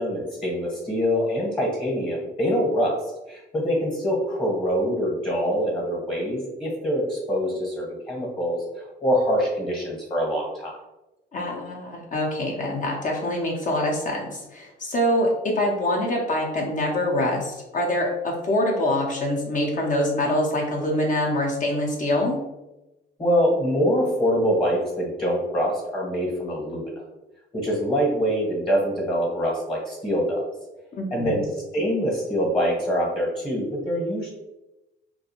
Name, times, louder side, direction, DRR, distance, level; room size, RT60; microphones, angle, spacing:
voice 1, 0.0-3.0 3.3-10.8 23.2-27.0 27.5-30.5 31.1-31.4 31.7-34.3, equal, 25° left, -3 dB, 0.9 m, -24 dB
voice 2, 11.3-22.4 31.0-31.4, left 1 dB, 40° left, -2 dB, 0.5 m, -25 dB
2.4 x 2.2 x 2.8 m, 0.98 s
cardioid pair, 90°, 20 cm